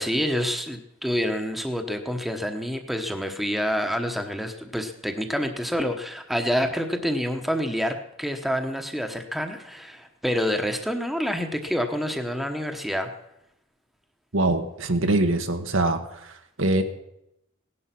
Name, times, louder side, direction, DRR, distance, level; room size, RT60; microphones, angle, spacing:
voice 1, 0.0-13.1, equal, ahead, 5 dB, 1.1 m, -27 dB
voice 2, 14.3-16.0 16.6-16.8, right 2 dB, 80° right, 6 dB, 1.4 m, -22 dB
17.0 x 11.5 x 5.9 m, 0.84 s
head